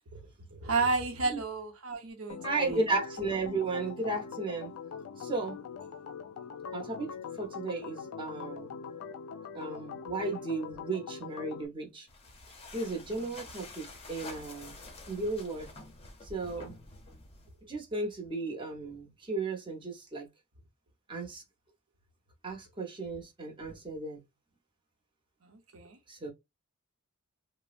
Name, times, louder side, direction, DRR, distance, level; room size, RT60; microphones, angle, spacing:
voice 1, 0.5-2.8 13.2-13.3 25.4-26.0, right 3 dB, 70° right, 0.8 m, -32 dB
Organ, 2.3-11.7, left 6 dB, 80° left, 0.4 m, -42 dB
voice 2, 2.4-4.7 5.2-5.6 6.7-8.7 9.5-12.1 12.7-14.7 15.1-15.7 16.2-16.8 17.7-20.3 21.1-21.4 22.4-24.2 26.1-26.3, right 3 dB, 25° right, 0.8 m, -35 dB
sound 1, 12.1-17.6, left 2 dB, 30° left, 0.7 m, -48 dB
3.3 x 2.0 x 2.4 m
head